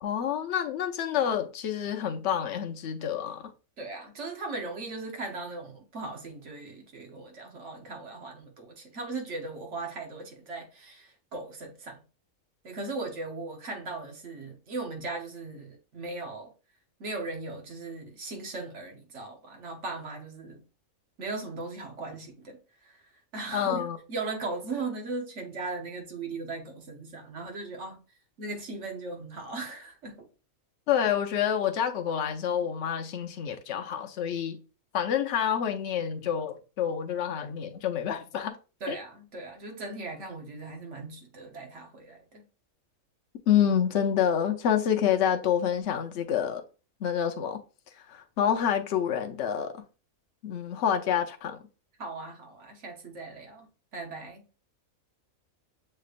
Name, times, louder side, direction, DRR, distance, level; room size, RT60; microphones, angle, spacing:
voice 1, 0.0-3.5 23.5-24.0 30.9-34.6 34.9-38.6 38.9-39.0 43.5-46.6 47.0-47.6 48.1-49.8 50.4-51.6, left 9 dB, 60° left, 0.9 m, -28 dB
voice 2, 3.8-12.0 12.6-16.5 17.0-20.6 21.2-22.6 22.9-23.0 23.3-28.0 28.4-30.3 38.8-42.5 52.0-53.7 53.9-54.4, right 3 dB, 60° right, 1.3 m, -38 dB
6.6 x 3.2 x 2.4 m
omnidirectional pair, 1.5 m